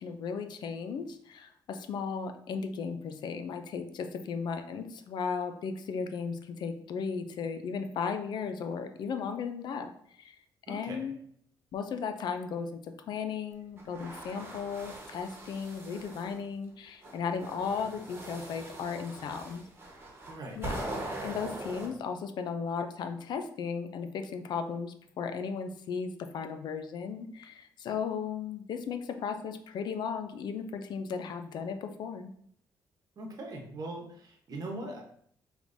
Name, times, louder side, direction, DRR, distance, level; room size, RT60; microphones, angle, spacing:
voice 1, 0.0-10.4 10.7-11.1 11.7-19.6 20.6-20.8 21.2-32.3, left 6 dB, 65° left, 7 dB, 0.4 m, -36 dB
voice 2, 10.7-11.0 20.3-20.6 33.2-35.0, right 2 dB, 50° right, 1 dB, 1.0 m, -40 dB
sound 1, 13.8-16.4 17.0-21.9, right 1 dB, 30° right, 1.1 m, -41 dB
4.9 x 3.2 x 2.6 m, 0.65 s
cardioid pair, 115°, 8 cm